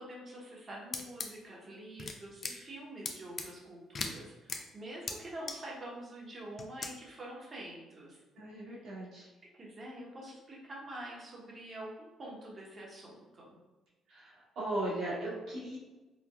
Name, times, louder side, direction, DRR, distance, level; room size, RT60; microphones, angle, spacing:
voice 1, 0.0-8.2 8.5-8.6 9.4-13.6, right 1 dB, 40° right, -3 dB, 1.1 m, -46 dB
sound 1, 0.9-1.3 2.0-2.1 2.4-2.5 3.1-3.5 4.0-4.1 4.5-4.6 5.1-5.2 5.5-5.6 6.6-6.9, left 4 dB, 50° left, 0.5 m, -36 dB
voice 2, 8.3-9.3 14.1-15.8, right 1 dB, 70° right, -6 dB, 1.4 m, -37 dB
4.4 x 2.2 x 2.4 m, 1.1 s
supercardioid pair, 65°, 0 cm